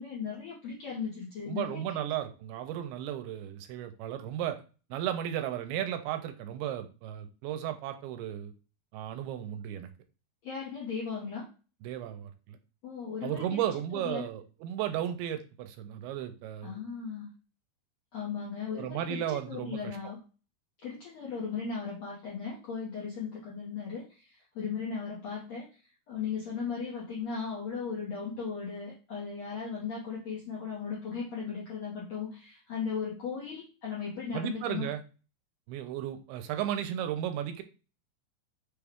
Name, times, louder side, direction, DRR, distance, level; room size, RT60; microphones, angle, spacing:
voice 1, 0.0-2.0 10.4-11.5 12.8-13.6 13.9-14.3 16.6-17.3 18.1-20.2 20.8-25.7 26.1-34.9, left 6 dB, 70° left, -5 dB, 1.6 m, -37 dB
voice 2, 1.5-4.6 4.9-8.5 8.9-9.9 11.8-12.6 13.2-16.8 18.7-20.0 34.3-35.0 35.7-37.6, right 11 dB, 80° right, 8 dB, 2.5 m, -34 dB
6.3 x 2.3 x 3.5 m, 0.34 s
omnidirectional pair, 4.6 m